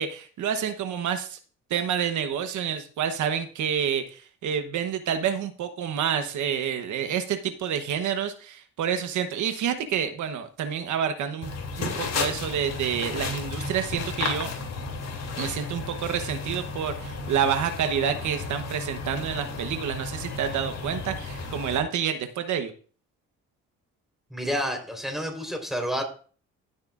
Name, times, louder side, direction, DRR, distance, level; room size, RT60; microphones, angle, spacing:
voice 1, 0.0-1.4 1.7-14.5 15.4-22.7, right 8 dB, 75° right, 8 dB, 1.0 m, -28 dB
sound 1, 11.4-21.8, left 4 dB, 60° left, 2.8 m, -33 dB
voice 2, 24.3-26.0, equal, ahead, 3 dB, 3.9 m, -29 dB
16.0 x 7.6 x 2.5 m, 0.40 s
cardioid pair, 90°, 30 cm